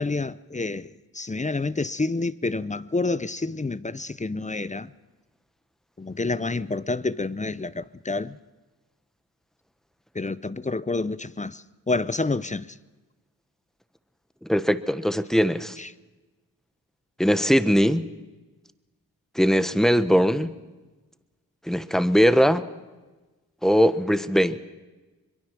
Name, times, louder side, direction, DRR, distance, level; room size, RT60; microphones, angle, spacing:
voice 1, 0.0-4.9 6.0-8.4 10.1-12.7 15.8-15.9, left 3 dB, 20° left, 0.6 m, -28 dB
voice 2, 14.5-15.8 17.2-18.1 19.3-20.6 21.7-22.7 23.6-24.6, equal, ahead, 1.1 m, -20 dB
23.0 x 22.5 x 6.0 m
cardioid pair, 60°, 37 cm